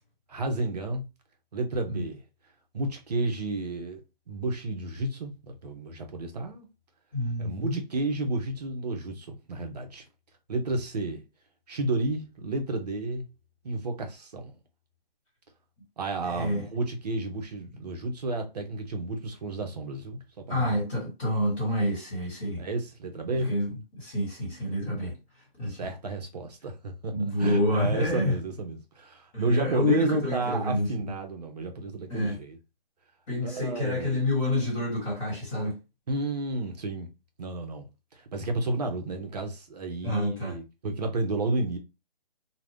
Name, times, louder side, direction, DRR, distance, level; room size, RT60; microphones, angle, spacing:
voice 1, 0.3-1.1 1.5-2.2 2.7-4.0 4.3-6.7 7.4-10.0 10.5-11.2 11.7-13.3 13.6-14.5 16.0-20.8 22.6-23.5 25.7-32.6 33.4-34.1 36.1-37.1 37.4-37.9 38.1-41.8, right 2 dB, 45° right, 0.7 m, -31 dB
voice 2, 7.1-7.8 16.2-16.6 20.5-22.6 23.3-25.1 25.6-25.8 27.1-28.3 29.3-30.9 32.1-32.4 33.3-35.8 40.0-40.5, left 1 dB, 20° left, 1.5 m, -28 dB
2.4 x 2.1 x 3.4 m
hypercardioid pair, 160°, 29 cm